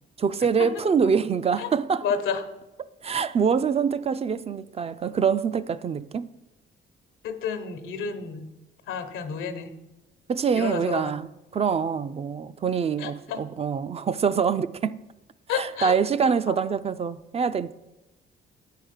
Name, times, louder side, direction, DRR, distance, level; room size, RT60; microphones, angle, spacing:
voice 1, 0.2-2.1 3.0-6.3 10.3-15.0 15.5-17.8, right 6 dB, 30° right, 0.3 m, -25 dB
voice 2, 2.0-2.4 7.2-8.4 8.9-9.7 10.6-11.1 13.0-13.4 15.5-15.9, left 6 dB, 90° left, 0.9 m, -30 dB
8.5 x 4.8 x 6.5 m
cardioid pair, 90°, 20 cm